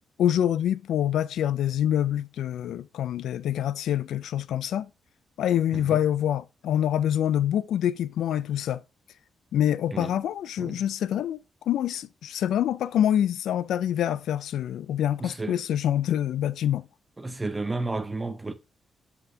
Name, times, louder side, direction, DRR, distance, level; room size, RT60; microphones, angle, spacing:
voice 1, 0.2-4.9 5.4-8.8 9.5-16.8, left 10 dB, 80° left, 0.4 m, -26 dB
voice 2, 9.9-10.2 10.6-10.8 15.2-15.6 17.2-18.5, right 2 dB, 10° right, 0.6 m, -32 dB
7.8 x 5.6 x 2.8 m
wide cardioid pair, 180°, 0 cm